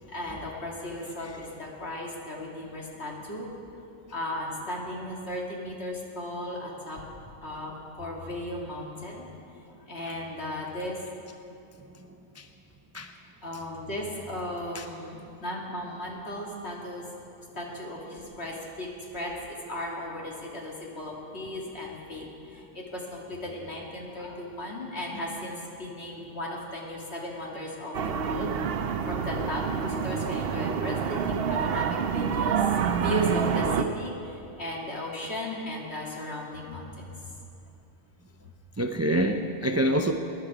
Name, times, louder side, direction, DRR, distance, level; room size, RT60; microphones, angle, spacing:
voice 1, 0.1-3.5 4.1-7.0 7.4-9.2 9.9-11.0 13.4-17.0 17.6-18.9 19.1-19.3 19.7-22.3 22.7-28.5 29.1-32.6 33.0-34.1 34.6-36.9, left 1 dB, 60° left, -3 dB, 2.5 m, -35 dB
voice 2, 11.9-12.5 12.9-13.1 14.7-14.9 38.8-40.1, right 1 dB, 25° right, 5 dB, 0.3 m, -27 dB
sound 1, 27.9-33.8, right 7 dB, 60° right, 0.8 m, -27 dB
21.0 x 10.5 x 4.9 m, 2.7 s
omnidirectional pair, 1.2 m